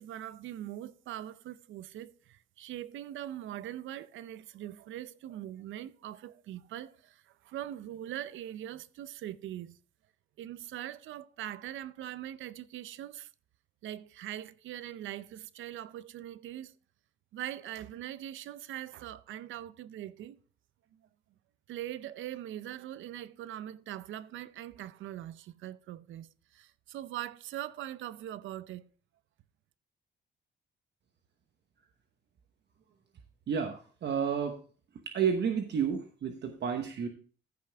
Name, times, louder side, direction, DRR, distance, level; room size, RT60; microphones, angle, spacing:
voice 1, 0.0-9.8 10.4-13.3 13.8-16.7 17.3-20.4 21.7-28.9, right 12 dB, 75° right, 0.6 m, -42 dB
voice 2, 33.5-34.6 35.1-37.1, right 7 dB, 60° right, 1.1 m, -31 dB
14.5 x 5.8 x 3.4 m
cardioid pair, 90°, 20 cm